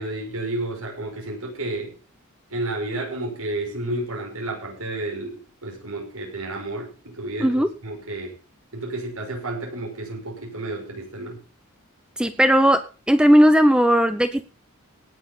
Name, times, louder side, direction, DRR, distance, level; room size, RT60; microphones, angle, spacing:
voice 1, 0.0-2.0 2.5-8.3 8.7-11.4, right 2 dB, 85° right, 0 dB, 6.2 m, -31 dB
voice 2, 12.2-12.8 13.1-14.4, equal, 5° right, 10 dB, 0.8 m, -16 dB
18.5 x 7.8 x 5.7 m, 0.34 s
head